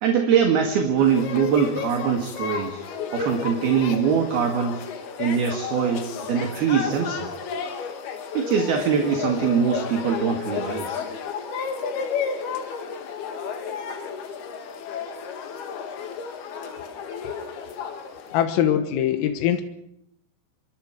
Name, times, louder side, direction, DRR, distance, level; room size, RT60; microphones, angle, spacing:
voice 1, 0.0-2.8 3.1-4.8 5.2-7.3 8.3-11.0, right 7 dB, 60° right, 4 dB, 3.4 m, -23 dB
sound 1, 1.0-18.4, left 6 dB, 60° left, 3.4 m, -32 dB
voice 2, 18.3-19.6, left 10 dB, 85° left, 8 dB, 4.1 m, -22 dB
27.5 x 23.0 x 4.7 m, 0.76 s
omnidirectional pair, 5.9 m